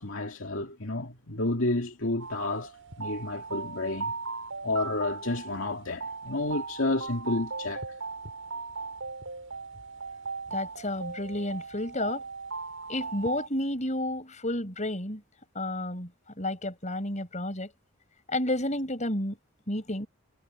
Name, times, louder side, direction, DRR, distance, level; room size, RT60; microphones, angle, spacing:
voice 1, 0.0-2.7 3.0-4.1 4.6-7.8, left 2 dB, 65° left, 2.5 m, -30 dB
sound 1, 2.2-13.5, right 4 dB, 70° right, 7.1 m, -38 dB
voice 2, 10.5-12.2 12.9-15.2 15.5-16.1 16.4-17.7 18.3-19.4 19.7-20.1, left 1 dB, 35° left, 6.2 m, -31 dB
head